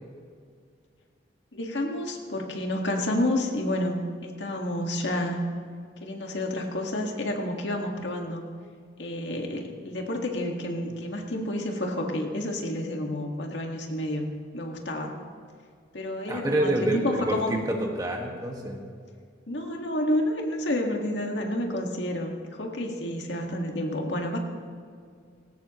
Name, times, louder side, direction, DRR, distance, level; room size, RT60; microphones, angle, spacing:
voice 1, 1.5-5.4 6.0-8.4 9.0-14.3 14.5-15.1 15.9-17.7 19.5-24.4, left 1 dB, 70° left, 1 dB, 1.9 m, -30 dB
voice 2, 16.3-17.0 17.3-18.8, right 1 dB, 20° right, 0 dB, 1.8 m, -27 dB
19.5 x 17.5 x 3.1 m, 2.1 s
head